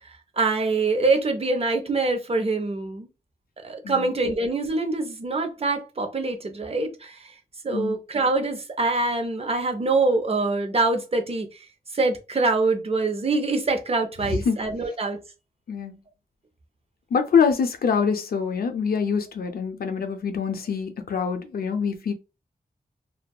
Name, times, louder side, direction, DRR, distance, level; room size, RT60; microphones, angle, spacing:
voice 1, 0.4-3.1 3.6-7.3 7.6-11.5 11.9-15.2, right 3 dB, 40° right, 0.5 m, -24 dB
voice 2, 17.1-22.1, left 6 dB, 85° left, 0.4 m, -24 dB
2.6 x 2.2 x 2.2 m
wide cardioid pair, 100°, 15 cm